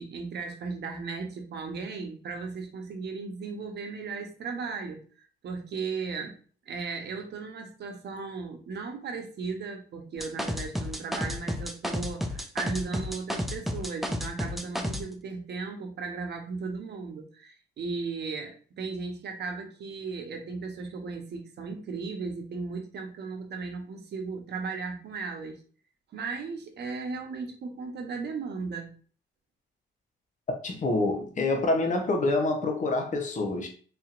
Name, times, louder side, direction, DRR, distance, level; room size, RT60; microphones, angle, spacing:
voice 1, 0.0-5.0 5.4-6.4 6.7-25.6 26.1-28.9, right 4 dB, 60° right, 1.0 m, -36 dB
sound 1, 10.2-15.0, equal, ahead, 0.5 m, -31 dB
voice 2, 30.6-33.7, left 2 dB, 40° left, 0.9 m, -26 dB
4.2 x 2.9 x 2.5 m
cardioid pair, 90°, 20 cm